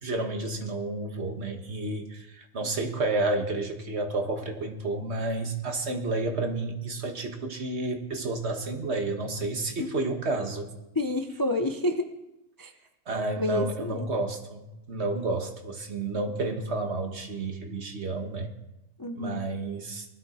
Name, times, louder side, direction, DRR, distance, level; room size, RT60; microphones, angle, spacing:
voice 1, 0.0-10.7 13.1-18.5 19.1-20.1, right 2 dB, 50° right, 5 dB, 1.7 m, -31 dB
voice 2, 10.9-12.1 12.6-12.7 13.4-14.1 19.0-19.4, left 1 dB, 20° left, 5 dB, 0.6 m, -29 dB
20.0 x 13.0 x 4.3 m, 0.94 s
omnidirectional pair, 1.4 m